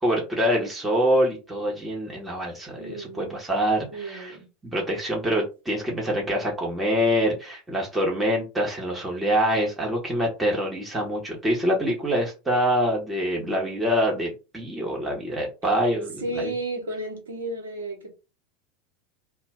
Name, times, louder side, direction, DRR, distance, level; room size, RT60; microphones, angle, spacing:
voice 1, 0.0-4.3 4.6-16.5, equal, 10° right, 1.0 m, -25 dB
voice 2, 2.8-3.4 3.9-4.5 15.7-15.8 16.2-18.1, right 2 dB, 80° right, 0.9 m, -33 dB
2.2 x 2.1 x 3.5 m
hypercardioid pair, 80°, 0 cm